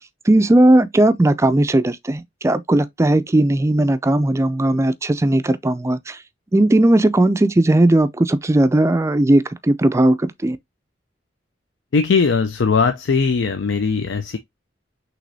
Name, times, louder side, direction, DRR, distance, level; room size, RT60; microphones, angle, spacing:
voice 1, 0.3-6.2 6.5-10.6, right 1 dB, 15° right, 0.3 m, -17 dB
voice 2, 11.9-14.4, left 5 dB, 85° left, 0.5 m, -19 dB
6.1 x 3.0 x 2.6 m
head